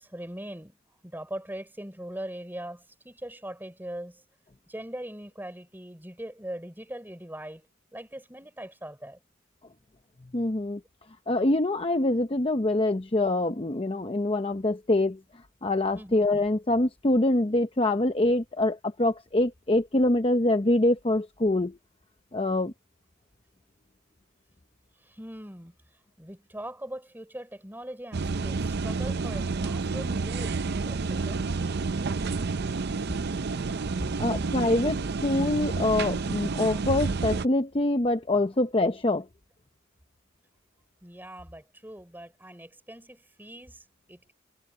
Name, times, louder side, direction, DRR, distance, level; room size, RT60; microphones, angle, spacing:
voice 1, 0.0-4.2 4.7-9.2 15.9-16.1 25.0-25.8 26.2-31.8 41.0-44.3, right 1 dB, 10° right, 5.6 m, -41 dB
voice 2, 10.3-10.8 11.3-15.2 15.6-21.8 22.3-22.7 34.2-39.3, left 2 dB, 25° left, 0.7 m, -25 dB
sound 1, 28.1-37.5, right 4 dB, 50° right, 0.5 m, -29 dB
head